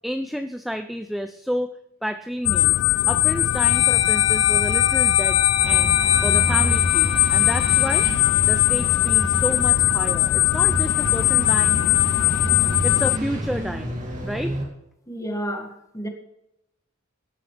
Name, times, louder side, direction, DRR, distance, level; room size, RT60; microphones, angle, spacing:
voice 1, 0.0-1.7 2.0-2.8 3.1-5.9 6.2-8.1 8.4-11.8 12.8-14.6, equal, ahead, 9 dB, 0.4 m, -30 dB
Stretched high feedback with abrupt end, 2.3-2.8 3.3-9.4, left 7 dB, 50° left, 3.9 m, -29 dB
sound 1, 2.4-13.2, left 17 dB, 75° left, 0.3 m, -20 dB
sound 2, 5.6-14.7, equal, 40° right, 2.7 m, -29 dB
voice 2, 15.1-16.1, equal, 15° left, 2 dB, 1.9 m, -31 dB
17.5 x 10.0 x 3.3 m, 0.83 s
head